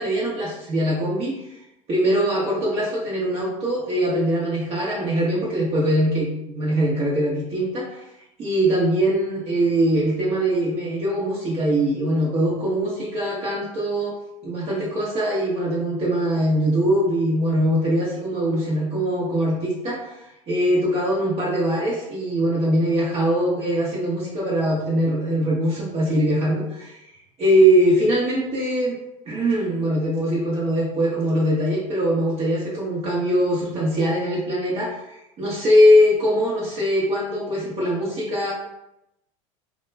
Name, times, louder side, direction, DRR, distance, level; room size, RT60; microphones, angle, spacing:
voice 1, 0.0-1.6 1.9-8.1 8.4-14.2 14.4-27.1 27.4-29.0 29.3-38.5, equal, 35° right, -6 dB, 0.7 m, -22 dB
2.2 x 2.1 x 3.2 m, 0.86 s
hypercardioid pair, 100°, 17 cm